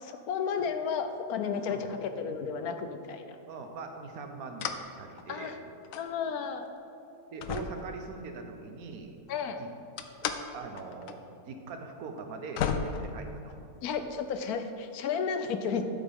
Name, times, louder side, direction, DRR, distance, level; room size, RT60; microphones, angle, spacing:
voice 1, 0.0-3.4 5.3-5.6 5.9-6.7 9.3-9.6 13.8-15.8, left 6 dB, 90° left, 8 dB, 1.2 m, -33 dB
voice 2, 3.5-5.5 7.3-9.2 9.6-9.7 10.5-13.6, right 4 dB, 75° right, 5 dB, 1.4 m, -42 dB
sound 1, 4.6-4.9 5.2-6.1 6.7-6.8 7.4-8.5 10.0-10.4 10.8-11.1 11.4-11.5 12.2-12.3 12.6-13.7, left 6 dB, 70° left, 1.0 m, -34 dB
12.0 x 7.0 x 3.7 m, 2.7 s
omnidirectional pair, 1.5 m